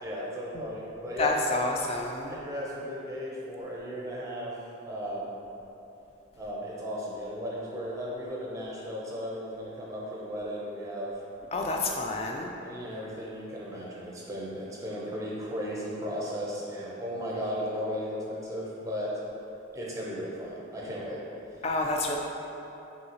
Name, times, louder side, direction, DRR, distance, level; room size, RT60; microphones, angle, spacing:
voice 1, 0.0-1.3 2.3-4.6 4.9-5.4 6.4-11.2 12.6-19.2 19.7-21.2, equal, 15° right, -5 dB, 0.6 m, -35 dB
voice 2, 1.2-2.4 11.5-12.5 21.6-22.2, left 2 dB, 30° left, 1 dB, 0.3 m, -29 dB
5.5 x 2.7 x 2.9 m, 3.0 s
head